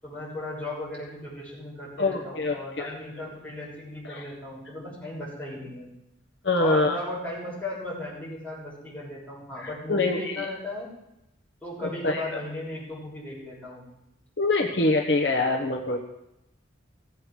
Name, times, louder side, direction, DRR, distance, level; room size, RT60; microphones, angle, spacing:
voice 1, 0.0-5.9 6.6-10.9 11.6-13.9, left 1 dB, 5° left, -7 dB, 6.4 m, -36 dB
voice 2, 2.0-2.9 4.1-4.2 6.4-7.0 9.6-10.4 12.0-12.2 14.4-16.0, left 2 dB, 60° left, 2 dB, 1.2 m, -25 dB
17.0 x 7.6 x 6.3 m, 0.87 s
head